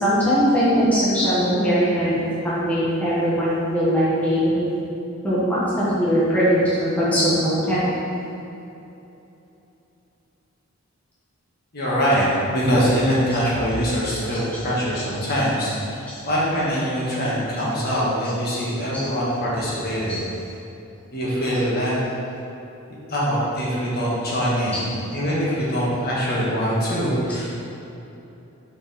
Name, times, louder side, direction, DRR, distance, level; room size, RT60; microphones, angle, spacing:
voice 1, 0.0-2.2 2.6-4.6 5.2-7.8, equal, 5° left, -10 dB, 1.2 m, -20 dB
voice 2, 11.7-12.2 12.5-20.2 21.1-22.0 23.1-24.9 25.1-27.6, equal, 45° left, -7 dB, 1.3 m, -23 dB
5.7 x 4.5 x 4.2 m, 2.9 s
head